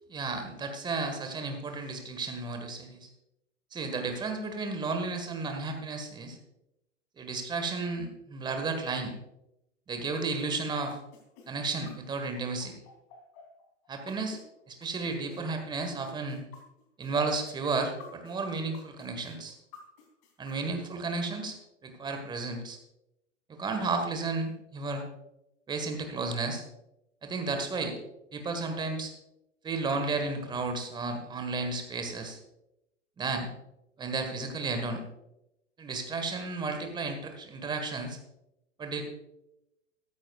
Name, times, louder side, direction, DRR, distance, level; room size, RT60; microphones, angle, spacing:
voice 1, 0.1-3.1 3.7-6.4 7.2-9.1 9.9-11.0 11.5-12.7 13.9-14.4 14.7-16.4 17.0-19.6 20.4-21.6 21.8-22.8 23.5-25.0 25.7-26.6 27.2-28.0 28.3-29.1 29.6-32.4 33.2-33.5 34.0-35.0 35.8-38.2 38.8-39.0, right 3 dB, 10° right, 5 dB, 1.7 m, -33 dB
sound 1, 10.1-14.4 14.8-18.4 18.7-20.6, left 5 dB, 35° left, 3.4 m, -52 dB
14.5 x 14.0 x 2.5 m, 0.87 s
figure-of-eight pair, 105°, 37 cm